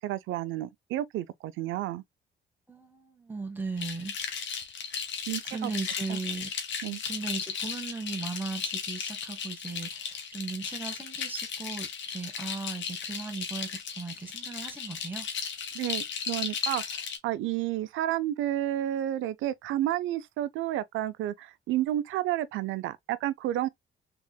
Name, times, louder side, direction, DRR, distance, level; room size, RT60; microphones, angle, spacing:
voice 1, 0.0-2.0 5.3-5.7 6.1-6.2 6.8-7.0 15.7-23.7, right 13 dB, 90° right, 0.5 m, -31 dB
voice 2, 2.7-4.2 5.5-6.5 7.1-15.3, right 4 dB, 10° right, 1.2 m, -37 dB
sound 1, 3.8-17.2, left 6 dB, 70° left, 1.2 m, -36 dB
3.7 x 3.6 x 2.2 m
cardioid pair, 90°, 20 cm